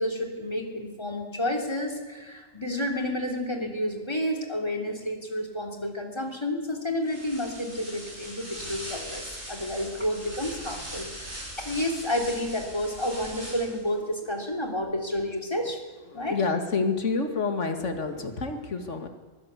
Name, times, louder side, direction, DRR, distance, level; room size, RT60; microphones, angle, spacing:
voice 1, 0.0-15.8 16.1-16.4, left 1 dB, 20° left, 2 dB, 3.2 m, -30 dB
sound 1, 7.0-13.9, equal, 60° right, 7.6 m, -40 dB
voice 2, 16.1-19.1, left 4 dB, 70° left, 6 dB, 2.4 m, -28 dB
23.0 x 16.0 x 8.4 m, 1.3 s
omnidirectional pair, 1.3 m